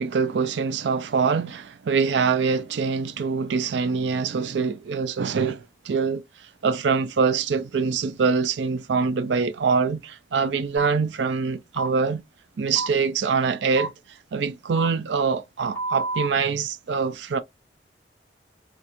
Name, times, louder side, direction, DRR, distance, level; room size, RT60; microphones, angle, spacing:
voice 1, 0.0-6.2 6.6-12.2 12.6-13.9 14.3-17.4, right 5 dB, 85° right, 0.4 m, -24 dB
sound 1, 10.8-10.9 11.7-11.9 12.7-12.9 13.7-13.9 14.7-14.9 15.7-16.3, right 2 dB, 15° left, 1.2 m, -29 dB
4.3 x 2.4 x 2.5 m
head